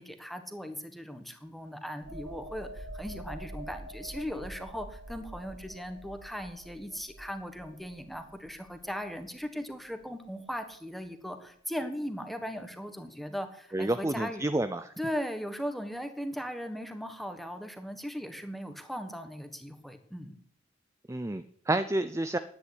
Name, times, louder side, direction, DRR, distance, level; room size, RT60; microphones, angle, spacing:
voice 1, 0.0-14.5 15.0-20.4, equal, ahead, 7 dB, 1.5 m, -38 dB
sound 1, 2.0-9.5 9.8-10.0, right 1 dB, 75° right, 2.2 m, -46 dB
voice 2, 13.7-14.9 21.1-22.4, right 1 dB, 15° right, 11 dB, 0.5 m, -29 dB
11.0 x 9.6 x 9.9 m, 0.66 s
head